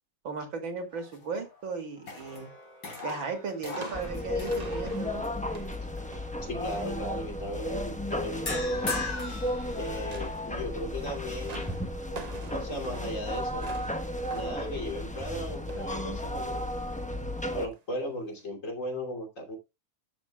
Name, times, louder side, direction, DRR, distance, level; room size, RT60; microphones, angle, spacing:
voice 1, 0.2-2.5 3.0-5.2, right 4 dB, 80° right, 4 dB, 3.3 m, -36 dB
sound 1, 0.9-1.6 2.0-5.3 5.7-6.0 8.5-10.4, left 3 dB, 60° left, 3.9 m, -39 dB
sound 2, 2.2-2.7 2.9-7.1 7.4-9.5 9.9-16.0 16.3-16.6 17.6-17.8 18.4-18.5, right 4 dB, 40° right, 0.6 m, -48 dB
sound 3, 3.9-17.7, left 1 dB, 10° left, 0.5 m, -34 dB
voice 2, 6.4-8.9 9.7-11.8 12.5-13.7 14.3-16.6 17.5-19.6, equal, 40° left, 2 dB, 3.1 m, -36 dB
14.0 x 7.4 x 2.3 m, 0.23 s
omnidirectional pair, 2.1 m